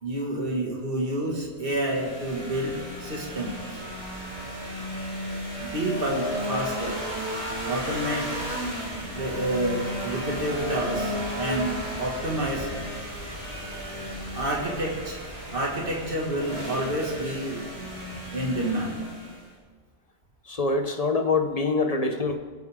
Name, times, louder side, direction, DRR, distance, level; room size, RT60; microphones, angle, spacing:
voice 1, 0.0-3.8 5.6-7.0 7.6-8.4 9.1-12.7 14.3-15.2 15.5-17.6 18.3-19.0, right 1 dB, 55° right, -2 dB, 2.3 m, -29 dB
sound 1, 1.7-19.5, equal, 30° right, 3.1 m, -34 dB
voice 2, 20.5-22.4, left 3 dB, 35° left, 5 dB, 1.0 m, -25 dB
21.5 x 8.1 x 3.7 m, 1.4 s
omnidirectional pair, 1.1 m